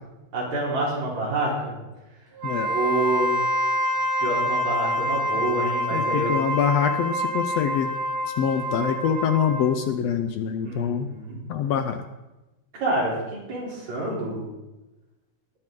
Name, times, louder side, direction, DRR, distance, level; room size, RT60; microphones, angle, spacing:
voice 1, 0.3-1.7 2.7-3.3 4.2-6.3 10.6-11.4 12.7-14.4, right 2 dB, 65° right, -4 dB, 5.0 m, -27 dB
Wind instrument woodwind instrument, 2.4-9.8, equal, 45° right, 0.7 m, -26 dB
voice 2, 5.9-7.9 8.4-11.1 11.5-12.0, left 8 dB, 70° left, 8 dB, 1.7 m, -25 dB
20.0 x 8.8 x 3.8 m, 1.0 s
omnidirectional pair, 3.4 m